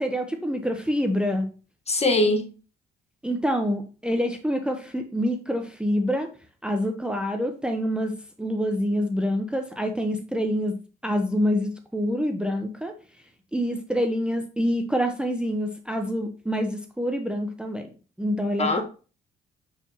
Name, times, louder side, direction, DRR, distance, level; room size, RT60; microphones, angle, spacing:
voice 1, 0.0-1.5 3.2-6.3 6.6-10.8 11.0-12.9 13.5-17.9 18.2-18.8, equal, 5° right, 0.8 m, -26 dB
voice 2, 1.9-2.5 18.6-18.8, left 2 dB, 30° left, 1.4 m, -22 dB
8.7 x 4.7 x 2.9 m
cardioid pair, 90°, 20 cm